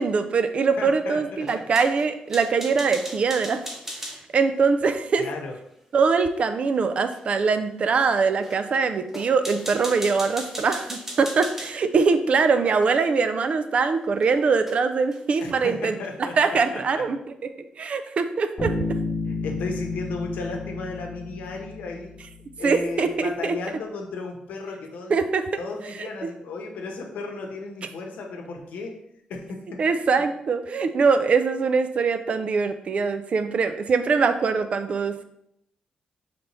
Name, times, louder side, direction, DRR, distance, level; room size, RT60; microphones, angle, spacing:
voice 1, 0.0-3.6 4.3-5.2 5.9-17.5 17.8-18.7 22.6-23.5 25.1-25.4 26.0-26.1 29.8-35.2, right 5 dB, 45° right, 9 dB, 0.4 m, -23 dB
voice 2, 0.8-1.7 5.2-5.6 15.4-17.0 18.7-18.8 19.2-22.2 22.6-25.2 25.6-29.0 29.3-29.8, left 3 dB, 90° left, 2 dB, 0.8 m, -35 dB
sound 1, 1.4-4.2 7.1-7.2 8.0-8.1 8.4-8.6 9.1-12.1 12.8-13.0 14.2-14.3 14.7-14.8 15.1-15.6, equal, 10° right, 0.7 m, -38 dB
Bass guitar, 18.6-22.4, left 3 dB, 45° left, 1.3 m, -31 dB
5.3 x 3.3 x 2.9 m, 0.77 s
cardioid pair, 120°, 3 cm